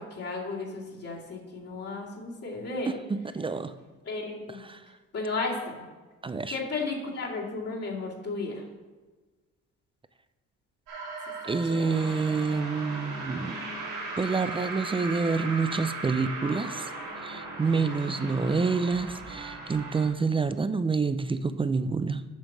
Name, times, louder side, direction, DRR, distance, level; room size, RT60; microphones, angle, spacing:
voice 1, 0.0-2.9 4.0-4.6 5.1-5.7 6.5-8.6 11.6-12.1, left 3 dB, 55° left, -4 dB, 2.4 m, -34 dB
voice 2, 2.9-3.7 4.7-4.8 6.2-6.6 11.5-13.6 14.2-16.9 17.2-22.3, right 4 dB, 20° right, 12 dB, 0.4 m, -28 dB
sound 1, 10.9-20.1, right 2 dB, 80° right, 2.6 m, -37 dB
7.4 x 5.3 x 6.1 m, 1.3 s
cardioid pair, 90°, 30 cm